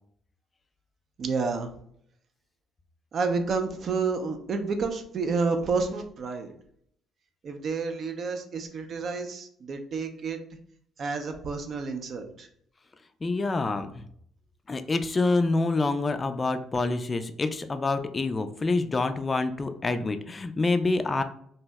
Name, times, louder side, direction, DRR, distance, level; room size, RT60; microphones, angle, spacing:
voice 1, 1.2-1.7 3.1-6.5 7.4-10.4 11.0-12.5, right 4 dB, 55° right, 6 dB, 0.5 m, -30 dB
voice 2, 13.2-14.0 14.7-21.2, left 3 dB, 30° left, 9 dB, 0.3 m, -27 dB
2.7 x 2.0 x 3.3 m, 0.66 s
supercardioid pair, 80°, 0 cm